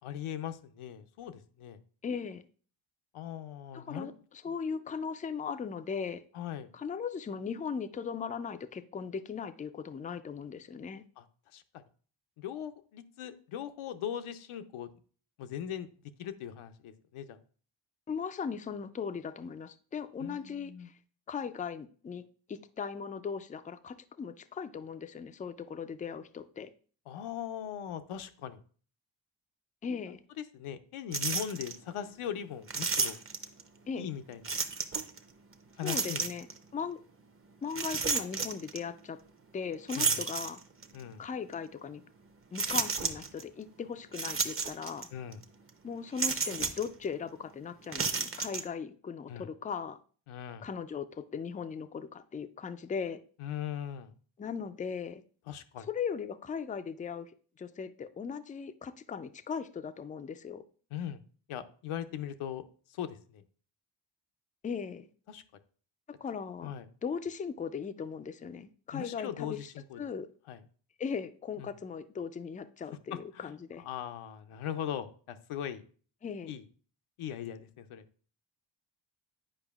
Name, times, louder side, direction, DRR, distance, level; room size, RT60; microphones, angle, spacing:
voice 1, 0.0-1.8 3.1-4.1 6.3-6.7 11.2-11.3 11.5-11.8 12.4-14.9 15.4-15.9 16.2-17.4 20.2-20.9 27.1-28.6 30.1-30.2 30.5-33.2 34.0-34.6 35.8-36.3 40.0-40.2 40.9-41.2 45.1-45.4 49.3-49.5 50.3-50.7 53.4-54.1 55.5-55.9 60.9-61.2 61.5-63.4 65.3-65.4 66.6-66.9 68.9-70.1 70.5-70.6 71.6-71.7 73.1-75.8 76.5-76.7 77.2-78.0, left 9 dB, 80° left, 10 dB, 0.7 m, -40 dB
voice 2, 2.0-2.4 3.7-4.1 4.4-6.2 6.7-11.0 18.1-20.9 21.3-22.2 22.5-26.7 29.8-30.2 33.9-34.1 35.8-36.5 36.7-37.0 37.6-39.2 39.5-40.6 41.2-42.0 42.5-45.1 45.8-50.0 50.6-53.2 54.4-55.2 55.9-57.3 57.6-60.6 64.6-65.1 66.2-66.7 67.0-69.6 70.0-70.3 71.0-73.8 76.2-76.5, left 6 dB, 20° left, 11 dB, 0.3 m, -38 dB
sound 1, 31.1-31.8 32.7-33.6 34.4-35.2 35.8-36.6 37.7-38.8 39.9-41.0 41.5-41.6 42.6-43.4 44.1-45.1 45.3-45.4 46.2-46.9 47.8-48.6, right 4 dB, 25° right, 0.7 m, -32 dB
8.9 x 4.9 x 2.3 m, 0.42 s
cardioid pair, 65°, 50 cm